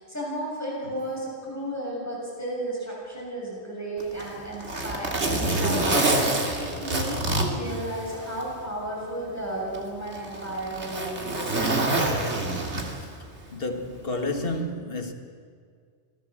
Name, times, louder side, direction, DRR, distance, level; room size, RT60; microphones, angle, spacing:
voice 1, 0.0-11.8, right 1 dB, 15° left, 7.3 m, -34 dB
Zipper (clothing), 4.0-8.5 8.9-9.0 9.7-13.2 14.4-14.6, right 2 dB, 65° right, 2.7 m, -26 dB
voice 2, 13.5-15.1, left 2 dB, 50° left, 1.9 m, -30 dB
26.5 x 16.5 x 7.6 m
omnidirectional pair, 1.2 m